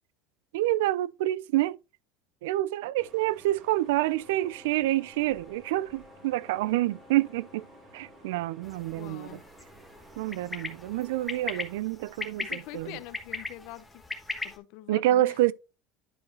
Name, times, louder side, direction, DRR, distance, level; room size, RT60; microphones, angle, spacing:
voice 1, 0.5-1.8 2.4-7.7 7.9-9.4 10.2-13.0 14.9-15.5, right 15 dB, 85° right, 0.3 m, -27 dB
sound 1, 3.0-11.8, right 3 dB, 30° right, 2.4 m, -54 dB
sound 2, 4.0-8.5, left 5 dB, 45° left, 1.5 m, -56 dB
sound 3, 8.6-14.6, left 3 dB, 10° left, 1.3 m, -39 dB
voice 2, 9.0-9.4 12.4-15.4, left 16 dB, 60° left, 0.6 m, -45 dB
10.5 x 4.8 x 2.8 m
supercardioid pair, 140°, 0 cm